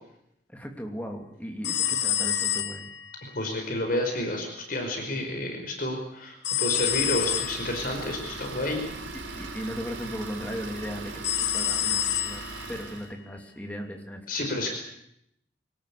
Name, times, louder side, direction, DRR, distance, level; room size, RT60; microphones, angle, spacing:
voice 1, 0.5-2.9 9.3-12.4 12.7-14.5, equal, 10° left, 3 dB, 2.9 m, -37 dB
sound 1, 1.6-3.2 6.4-7.7 11.2-12.6, left 11 dB, 70° left, 1.4 m, -27 dB
voice 2, 3.3-8.8 14.3-14.7, left 1 dB, 50° left, 4 dB, 5.2 m, -30 dB
Idling, 6.6-13.1, right 3 dB, 85° right, 5.5 m, -39 dB
24.0 x 19.0 x 8.6 m, 0.77 s
head